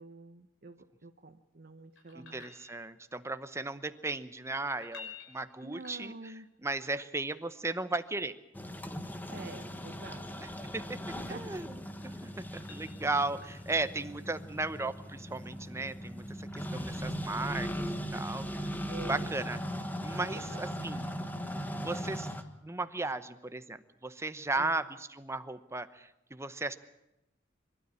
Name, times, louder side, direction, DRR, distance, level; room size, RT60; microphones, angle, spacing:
voice 1, 0.0-2.5 5.6-6.5 9.3-10.5 11.1-11.6 18.9-19.3 20.1-21.0 24.6-24.8, right 2 dB, 50° right, 6 dB, 1.0 m, -48 dB
sound 1, 2.0-3.2 4.7-6.5 8.6-10.3 11.7-13.8 16.5-16.6, left 5 dB, 70° left, 6.2 m, -53 dB
voice 2, 2.1-6.3 6.6-8.4 10.7-10.8 11.3-11.8 12.0-17.7 18.1-18.7 19.1-19.6 20.0-21.1 21.7-22.3 22.6-26.8, right 2 dB, 15° right, 11 dB, 0.8 m, -36 dB
sound 2, 8.5-22.4, equal, 10° left, 1.2 m, -39 dB
24.0 x 12.5 x 9.8 m, 0.92 s
head